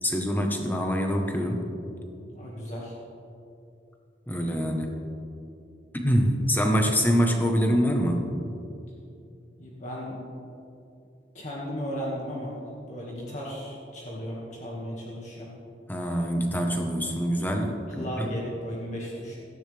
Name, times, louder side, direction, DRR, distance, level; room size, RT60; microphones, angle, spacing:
voice 1, 0.0-1.6 4.3-5.0 5.9-8.3 15.9-18.3, equal, 10° left, 2 dB, 1.3 m, -25 dB
voice 2, 2.3-3.0 9.6-10.2 11.3-12.5 12.9-15.5 17.9-19.3, equal, 40° left, -5 dB, 2.0 m, -35 dB
17.0 x 14.0 x 3.5 m, 2.6 s
head